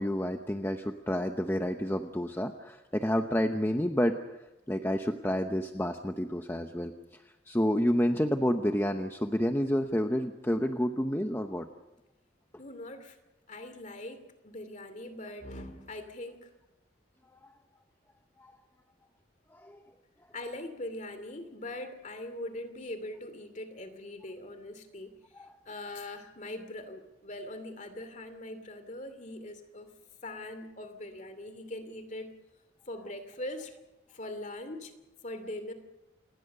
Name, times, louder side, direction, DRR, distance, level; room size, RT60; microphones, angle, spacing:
voice 1, 0.0-4.4 4.7-11.7 17.4-17.5 18.4-18.5 19.5-19.8 25.3-25.5, equal, 10° left, 6 dB, 0.9 m, -29 dB
voice 2, 12.6-13.2 13.5-16.5 20.3-25.1 25.7-29.9 30.2-32.3 32.9-33.7 34.1-34.9 35.2-35.7, left 1 dB, 40° left, 9 dB, 2.7 m, -41 dB
28.0 x 20.0 x 6.7 m, 0.98 s
head